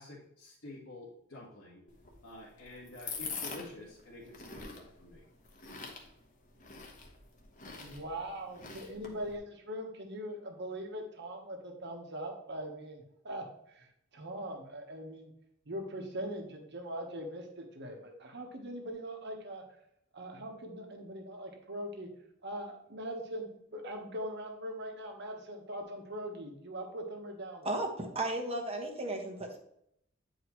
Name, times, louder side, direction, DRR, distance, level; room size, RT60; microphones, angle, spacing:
voice 1, 0.0-1.8 2.2-5.2, left 2 dB, 80° left, -5 dB, 1.7 m, -49 dB
sound 1, 1.9-9.4, left 4 dB, 40° left, 1.2 m, -45 dB
voice 2, 7.8-15.3 15.7-19.6 20.1-22.1 22.4-27.7, right 1 dB, 60° right, 3 dB, 1.3 m, -41 dB
voice 3, 27.6-29.6, right 2 dB, 30° right, 1 dB, 1.2 m, -34 dB
9.5 x 4.7 x 3.1 m, 0.74 s
head